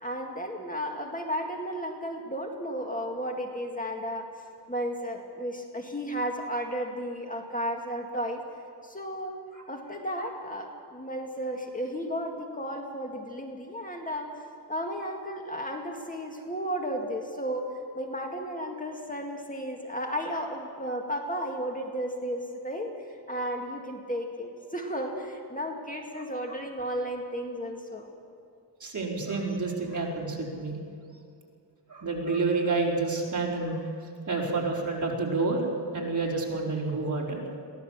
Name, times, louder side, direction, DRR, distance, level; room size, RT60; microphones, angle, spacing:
voice 1, 0.0-4.2 4.7-8.4 8.8-9.4 9.7-14.3 14.7-17.6 17.9-28.1, equal, 20° left, 1 dB, 2.0 m, -33 dB
voice 2, 28.8-30.8 31.9-33.8 34.3-35.7 35.9-37.4, right 3 dB, 45° right, -2 dB, 4.5 m, -29 dB
23.0 x 16.5 x 7.3 m, 2.4 s
wide cardioid pair, 90°, 42 cm